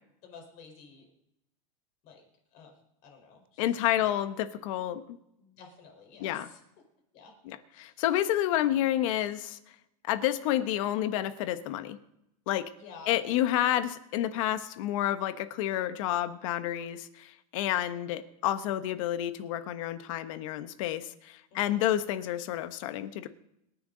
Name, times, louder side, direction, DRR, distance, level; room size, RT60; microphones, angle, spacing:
voice 1, 0.2-1.1 2.0-2.2 2.5-4.2 5.4-6.6 7.1-7.3 7.7-8.0 8.7-8.9 12.8-13.2 21.5-21.9, left 4 dB, 45° left, 2 dB, 4.5 m, -52 dB
voice 2, 3.6-5.2 6.2-6.5 7.5-9.6 10.0-12.0 12.5-12.7 13.1-23.3, left 12 dB, 60° left, 11 dB, 1.2 m, -30 dB
26.5 x 10.5 x 4.0 m, 0.82 s
supercardioid pair, 160°, 19 cm